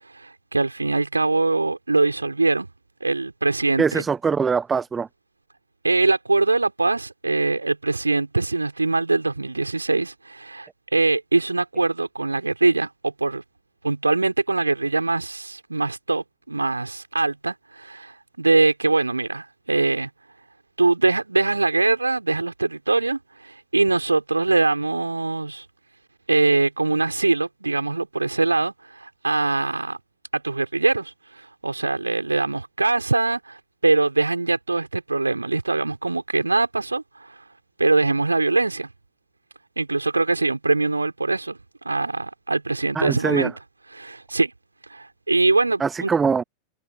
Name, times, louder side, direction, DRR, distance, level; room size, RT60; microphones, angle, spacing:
voice 1, 0.0-2.7 3.0-4.0 5.8-13.4 13.8-20.1 20.8-25.7 26.3-30.0 30.3-37.4 37.8-38.9 39.8-41.6 41.9-43.5 43.9-44.5 44.9-46.1, right 3 dB, 80° right, 3.7 m, -22 dB
voice 2, 3.8-5.1 42.9-43.5 45.8-46.4, right 5 dB, 15° right, 1.0 m, -22 dB
figure-of-eight pair, 90°, 0 cm